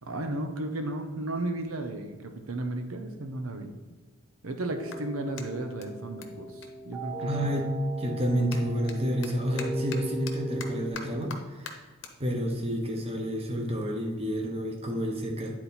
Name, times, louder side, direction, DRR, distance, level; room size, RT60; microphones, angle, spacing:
voice 1, 0.0-3.7 4.4-7.5 8.4-8.6, right 2 dB, 90° right, 6 dB, 0.8 m, -34 dB
sound 1, 4.7-10.9, right 2 dB, 10° right, 1.9 m, -38 dB
Clapping, 4.8-7.6 7.9-14.5, left 5 dB, 60° left, 0.9 m, -47 dB
voice 2, 7.2-7.7 8.0-11.8 12.2-15.5, equal, 30° right, 1 dB, 1.0 m, -30 dB
9.9 x 4.2 x 4.2 m, 1.3 s
head